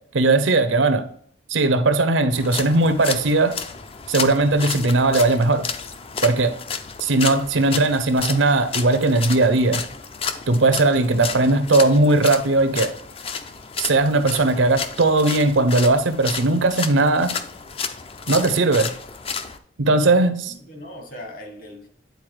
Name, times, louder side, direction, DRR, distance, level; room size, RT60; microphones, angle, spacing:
voice 1, 0.1-1.0 1.5-3.5 4.1-5.7 6.2-6.5 7.0-9.8 10.5-12.9 13.8-17.3 18.3-18.9 19.8-20.5, right 2 dB, 80° right, 0.7 m, -18 dB
sound 1, 2.3-19.6, left 6 dB, 30° left, 0.4 m, -32 dB
voice 2, 20.0-21.9, left 1 dB, 45° left, 1.5 m, -39 dB
9.3 x 4.0 x 3.2 m
head